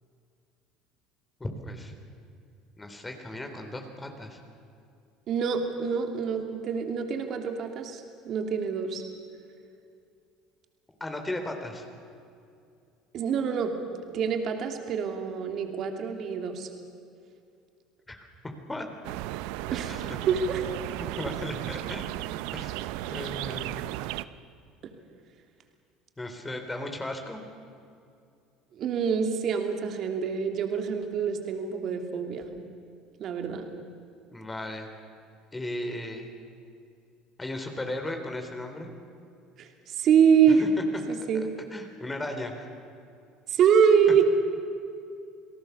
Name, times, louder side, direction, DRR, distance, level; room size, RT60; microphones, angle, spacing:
voice 1, 1.4-1.9 2.8-4.4 11.0-11.9 18.1-18.2 18.7-18.9 19.9-20.1 21.0-22.2 22.5-22.8 23.1-23.9 26.2-27.4 34.3-34.9 35.5-36.3 37.4-38.9 40.5-41.0 41.7-42.7, left 1 dB, 15° left, 5 dB, 3.8 m, -36 dB
voice 2, 5.3-9.0 13.1-13.7 14.1-16.7 19.7-20.6 28.7-32.5 33.2-33.6 39.6-40.7 41.1-41.4 43.5-44.2, right 7 dB, 55° right, 4 dB, 3.0 m, -25 dB
sound 1, 19.0-24.2, right 16 dB, 70° right, 0.7 m, -35 dB
28.5 x 18.0 x 7.0 m, 2.5 s
hypercardioid pair, 75°, 0 cm